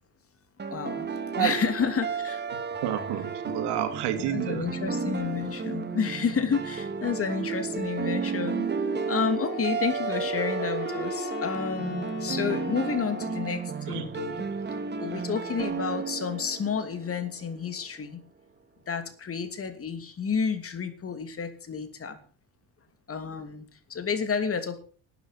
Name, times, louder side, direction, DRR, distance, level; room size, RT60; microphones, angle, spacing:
sound 1, 0.6-17.5, right 5 dB, 25° right, 1.7 m, -33 dB
voice 1, 0.7-1.1 1.4-2.4 4.3-8.7 9.1-14.4 14.7-18.2 18.9-22.2 23.1-24.8, left 6 dB, 35° left, 9 dB, 2.7 m, -30 dB
voice 2, 2.8-4.7 13.9-14.1, right 11 dB, 85° right, 7 dB, 2.8 m, -29 dB
Wind instrument woodwind instrument, 9.4-13.7, left 8 dB, 85° left, 3.3 m, -39 dB
12.5 x 9.1 x 7.3 m, 0.41 s
cardioid pair, 115°, 39 cm